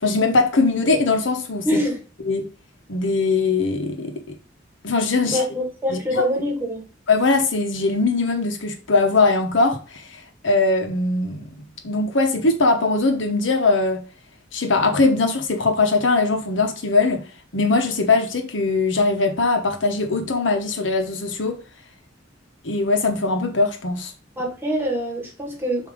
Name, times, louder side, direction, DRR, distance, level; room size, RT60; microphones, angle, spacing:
voice 1, 0.0-1.7 2.2-2.5 2.9-4.4 4.8-5.4 5.9-6.0 7.1-11.4 11.8-14.0 14.5-17.3 17.5-21.6 22.6-24.1, left 3 dB, 70° left, 1.1 m, -21 dB
voice 2, 1.6-2.0 5.2-6.8 24.4-25.9, equal, 10° right, 1.9 m, -24 dB
7.2 x 2.8 x 5.0 m
head